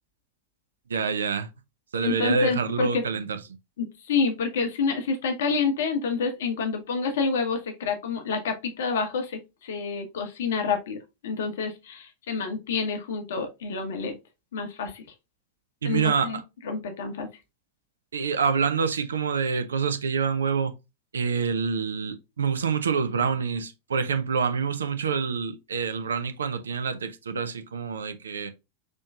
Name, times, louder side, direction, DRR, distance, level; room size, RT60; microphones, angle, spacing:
voice 1, 0.9-1.5 1.9-3.4 15.8-16.3 18.1-20.7 21.1-28.5, right 5 dB, 70° right, 0.5 m, -26 dB
voice 2, 2.0-3.0 3.8-11.0 11.2-14.2 14.5-15.0 15.8-17.3, left 5 dB, 60° left, 1.0 m, -28 dB
4.3 x 3.0 x 2.3 m
figure-of-eight pair, 90°, 0 cm